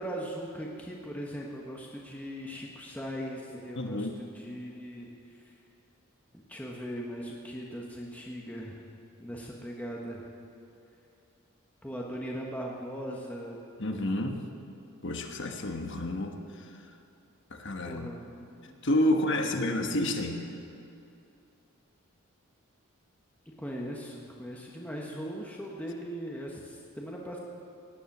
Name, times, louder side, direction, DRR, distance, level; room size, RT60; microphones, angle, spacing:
voice 1, 0.0-5.5 6.3-8.8 9.2-10.3 11.8-13.6 17.9-18.8 19.1-19.5 23.6-27.4, equal, 5° left, -2 dB, 1.1 m, -39 dB
voice 2, 3.8-4.2 13.8-14.4 15.0-16.8 17.5-18.1 18.8-20.5, left 1 dB, 55° left, 4 dB, 1.3 m, -30 dB
17.0 x 10.5 x 6.1 m, 2.7 s
head